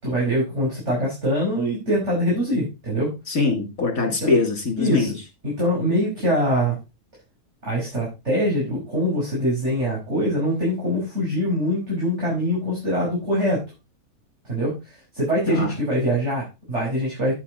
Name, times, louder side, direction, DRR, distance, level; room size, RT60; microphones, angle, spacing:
voice 1, 0.0-3.1 4.0-4.3 4.8-5.1 5.4-6.8 7.6-13.6 14.4-14.7 15.1-17.3, equal, 50° right, -5 dB, 6.0 m, -23 dB
voice 2, 3.3-5.1 15.5-15.7, left 3 dB, 70° left, 3 dB, 3.5 m, -22 dB
10.0 x 8.4 x 4.1 m, 0.27 s
omnidirectional pair, 1.5 m